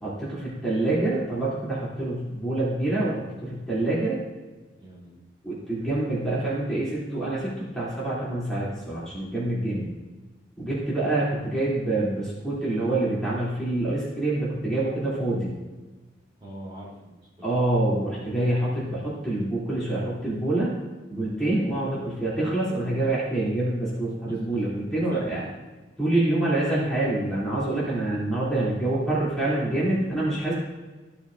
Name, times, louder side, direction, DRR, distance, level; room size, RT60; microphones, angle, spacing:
voice 1, 0.0-4.2 5.4-9.9 10.6-15.5 17.4-20.7 21.1-25.4 26.0-30.5, right 2 dB, 5° left, -9 dB, 3.1 m, -26 dB
voice 2, 4.8-5.2 16.4-17.6 24.3-24.4 25.1-25.4, right 1 dB, 30° right, -7 dB, 3.4 m, -41 dB
15.0 x 7.1 x 2.7 m, 1.2 s
head